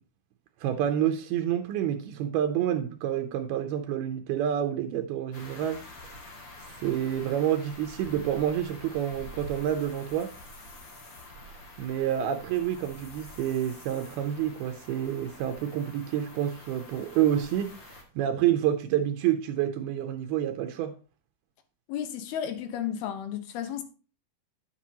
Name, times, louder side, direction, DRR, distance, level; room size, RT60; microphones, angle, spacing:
voice 1, 0.6-6.2 6.8-10.3 11.8-21.0, right 10 dB, 80° right, 2.5 m, -28 dB
sound 1, 5.3-18.0, left 1 dB, 50° left, 1.4 m, -47 dB
voice 2, 21.9-23.8, left 9 dB, 80° left, 2.9 m, -33 dB
10.0 x 7.3 x 2.8 m
omnidirectional pair, 4.6 m